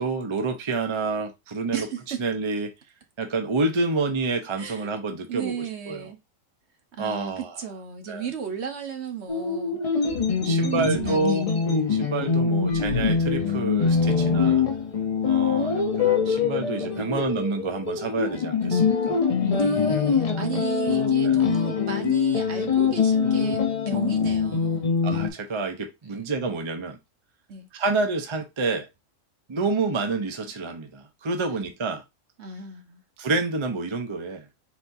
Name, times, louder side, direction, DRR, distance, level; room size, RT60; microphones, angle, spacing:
voice 1, 0.0-1.9 2.2-2.7 3.2-6.0 7.0-7.5 8.1-8.3 10.4-11.5 11.9-14.6 15.2-19.2 21.2-21.4 25.0-27.0 27.7-28.9 29.5-32.0 33.2-34.4, right 3 dB, 30° right, 0.6 m, -28 dB
voice 2, 1.7-2.2 4.6-5.0 5.3-6.2 7.0-9.8 10.4-11.4 17.0-17.2 19.5-24.9 27.5-27.7 32.4-33.0, right 7 dB, 60° right, 1.2 m, -34 dB
sound 1, 9.3-25.3, left 6 dB, 35° left, 0.6 m, -23 dB
sound 2, 10.0-11.7 12.6-13.6, left 4 dB, 70° left, 1.2 m, -38 dB
4.3 x 4.1 x 2.6 m
omnidirectional pair, 1.4 m